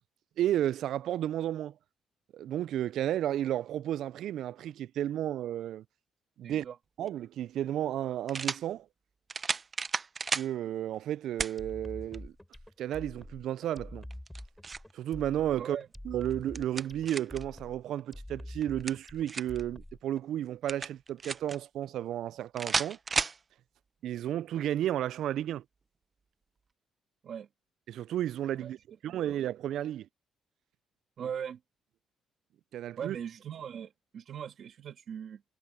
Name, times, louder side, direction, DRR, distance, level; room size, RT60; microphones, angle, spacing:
voice 1, 0.4-1.7 2.3-5.8 6.4-6.7 7.0-8.9 10.3-12.3 12.8-14.0 14.9-15.8 16.1-23.0 24.0-25.6 27.9-28.8 29.0-30.1 32.7-33.2, right 11 dB, 75° right, 0.3 m, -32 dB
voice 2, 6.4-6.8 15.6-15.9 27.2-27.5 28.6-28.7 29.0-29.4 31.2-31.6 33.0-35.4, right 8 dB, 60° right, 1.9 m, -40 dB
sound 1, 7.0-7.1 8.3-8.6 9.3-10.5 11.4-11.6 12.1-12.2 14.1-14.9 16.3-17.4 18.6-19.6 20.7-21.6 22.6-23.4, right 4 dB, 35° right, 0.6 m, -33 dB
sound 2, 11.6-20.2, left 1 dB, 5° left, 6.3 m, -46 dB
cardioid pair, 90°, 0 cm